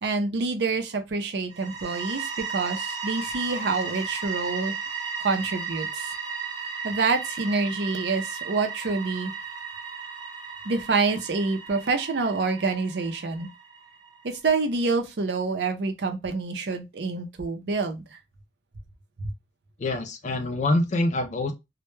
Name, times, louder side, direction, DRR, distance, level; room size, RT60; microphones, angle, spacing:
voice 1, 0.0-4.7 5.2-6.1 6.8-9.3 10.6-13.5 14.2-18.2 19.2-19.3, right 4 dB, 70° right, 0.5 m, -27 dB
sound 1, 1.5-14.2, right 5 dB, 25° right, 0.7 m, -35 dB
voice 2, 19.8-21.5, left 2 dB, 40° left, 0.3 m, -25 dB
2.1 x 2.1 x 3.0 m
head